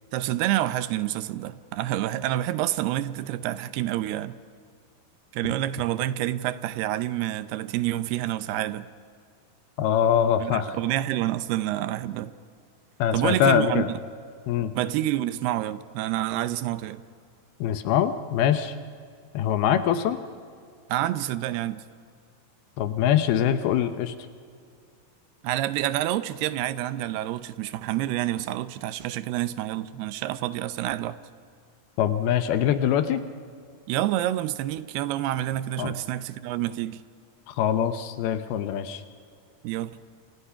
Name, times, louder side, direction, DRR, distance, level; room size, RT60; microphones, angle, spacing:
voice 1, 0.1-4.4 5.3-8.9 10.4-12.3 13.1-13.9 14.7-17.0 20.9-21.8 25.4-31.2 33.9-37.0 39.6-39.9, right 14 dB, 80° right, 2.6 m, -28 dB
voice 2, 9.8-10.8 13.0-13.9 14.5-14.7 17.6-18.7 19.3-20.2 22.8-24.1 32.0-33.2 35.8-35.9 37.5-39.0, left 9 dB, 75° left, 2.7 m, -23 dB
29.0 x 26.5 x 5.8 m
omnidirectional pair, 4.7 m